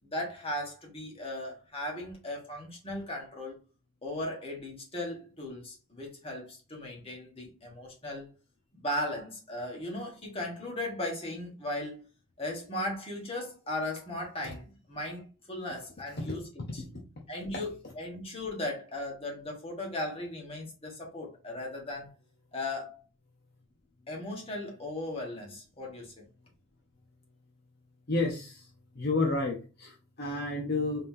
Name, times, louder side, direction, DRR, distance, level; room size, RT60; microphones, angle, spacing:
voice 1, 0.0-3.6 4.0-8.3 8.8-12.0 12.4-16.5 16.7-16.8 17.3-22.1 22.5-23.0 24.1-26.1, left 1 dB, 25° left, 1.4 m, -37 dB
voice 2, 28.1-28.7 28.9-31.1, left 2 dB, 50° left, 0.7 m, -31 dB
4.0 x 3.7 x 2.6 m
head